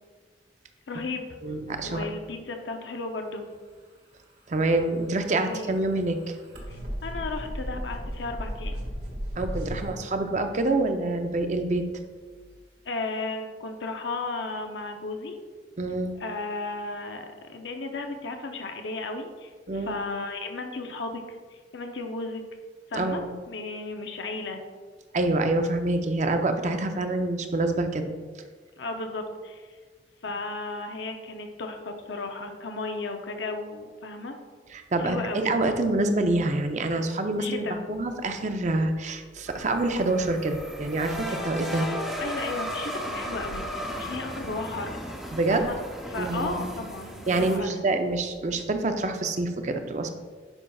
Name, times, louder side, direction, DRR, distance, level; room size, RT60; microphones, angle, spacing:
voice 1, 0.9-1.6 1.8-3.5 5.4-5.7 6.7-8.8 9.7-9.8 12.8-15.4 16.1-21.2 21.5-22.4 22.9-24.6 28.8-29.8 30.2-34.4 35.0-35.6 37.4-37.8 41.3-41.4 42.2-45.1 45.5-45.8 46.1-47.8, left 3 dB, 85° left, 4 dB, 0.6 m, -34 dB
voice 2, 1.4-2.1 4.5-6.2 9.4-11.8 15.8-16.1 19.7-20.0 22.9-23.3 25.1-28.1 34.7-41.9 45.3-45.7 46.2-46.8 47.3-50.1, right 2 dB, 40° right, 6 dB, 0.5 m, -26 dB
sound 1, 4.7-9.9, equal, 65° right, 1.7 m, -35 dB
sound 2, 39.5-47.6, equal, ahead, 0.7 m, -35 dB
9.8 x 5.5 x 2.3 m, 1.5 s
head